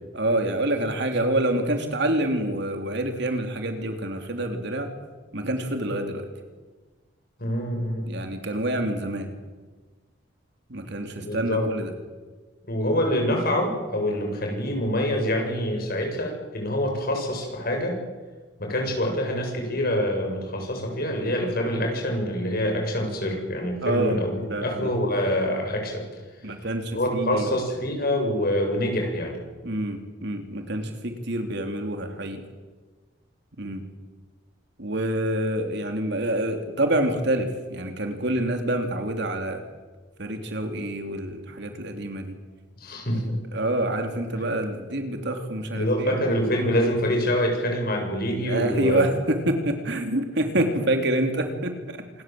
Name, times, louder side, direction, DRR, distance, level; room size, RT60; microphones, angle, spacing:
voice 1, 0.1-4.9 5.3-6.3 8.0-9.3 10.7-11.9 23.8-24.2 24.5-24.9 26.4-27.7 29.6-32.4 33.6-33.8 34.8-39.6 40.2-42.3 43.5-46.2 48.4-52.0, right 1 dB, 65° right, 5 dB, 3.4 m, -27 dB
voice 2, 7.4-8.0 11.2-11.7 12.7-18.0 18.6-24.3 24.6-26.0 26.9-29.4 42.8-43.3 45.7-49.0, equal, 55° left, 2 dB, 7.5 m, -25 dB
27.0 x 21.0 x 7.9 m, 1.3 s
head